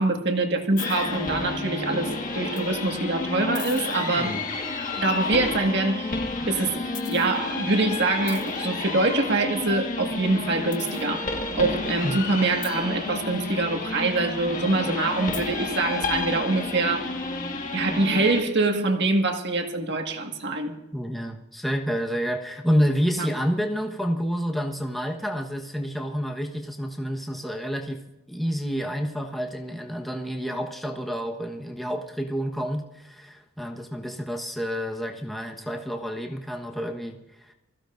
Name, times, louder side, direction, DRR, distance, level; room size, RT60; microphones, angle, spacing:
voice 1, 0.0-4.4 5.0-6.1 6.5-6.8 7.1-17.1 17.7-20.7 23.2-23.3, right 2 dB, 50° right, 3 dB, 1.8 m, -24 dB
sound 1, 0.8-18.4, left 3 dB, 35° left, 1.6 m, -31 dB
voice 2, 20.9-37.5, equal, ahead, 1 dB, 1.2 m, -29 dB
25.5 x 15.5 x 2.6 m, 0.97 s
head